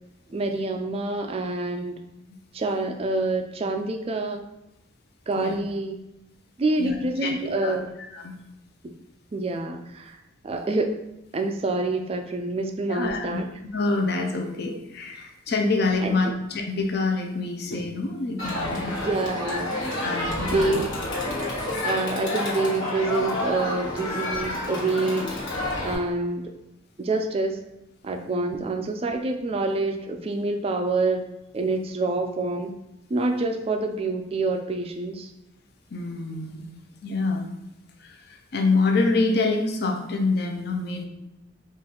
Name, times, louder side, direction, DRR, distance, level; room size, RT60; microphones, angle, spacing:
voice 1, 0.3-2.0 2.5-4.4 5.3-6.0 6.6-7.9 8.8-8.9 9.3-10.2 10.4-10.9 11.3-13.5 16.0-16.3 18.8-19.8 20.5-20.9 21.8-25.4 25.8-26.5 27.0-27.6 28.0-31.3 31.5-32.7 33.1-35.3, right 2 dB, 30° right, 5 dB, 0.3 m, -27 dB
voice 2, 7.2-7.8 8.1-8.4 12.9-13.4 13.7-18.9 20.0-20.8 35.9-36.6 37.0-37.5 38.0-41.0, left 3 dB, 50° left, 2 dB, 0.5 m, -26 dB
Crowd, 18.4-26.0, left 1 dB, 75° left, 1.3 m, -29 dB
4.1 x 2.5 x 3.7 m, 0.92 s
head